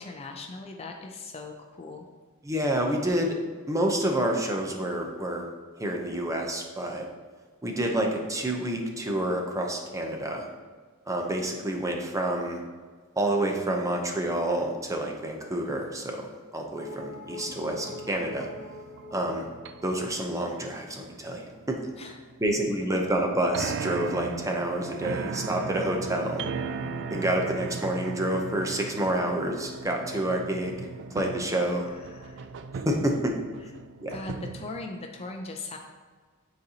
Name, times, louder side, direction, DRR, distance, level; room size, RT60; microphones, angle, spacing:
voice 1, 0.0-2.0 22.0-22.2 31.9-32.4 34.1-35.8, left 3 dB, 30° left, 3 dB, 0.5 m, -39 dB
voice 2, 2.4-3.4 3.7-5.5 5.8-7.0 7.6-10.5 11.1-12.6 13.2-18.5 19.1-19.5 19.8-21.8 22.4-26.4 27.1-31.9 32.7-33.3 34.0-34.1, right 1 dB, 15° right, 1 dB, 0.7 m, -28 dB
sound 1, 16.8-21.1 23.3-29.7 30.1-30.2, equal, 55° left, 1.3 m, -44 dB
sound 2, 17.3-34.9, right 5 dB, 55° right, 0.3 m, -38 dB
9.3 x 4.0 x 2.8 m, 1.5 s
head